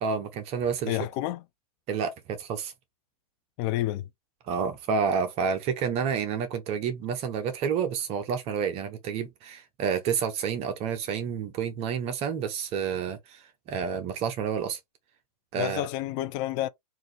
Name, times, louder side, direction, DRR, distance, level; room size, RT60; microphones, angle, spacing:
voice 1, 0.0-1.0 1.9-2.7 4.5-14.8 15.5-15.8, right 6 dB, 30° right, 0.8 m, -29 dB
voice 2, 0.9-1.4 3.6-4.1 15.6-16.7, left 14 dB, 30° left, 0.4 m, -29 dB
3.8 x 2.6 x 3.2 m
hypercardioid pair, 115°, 20 cm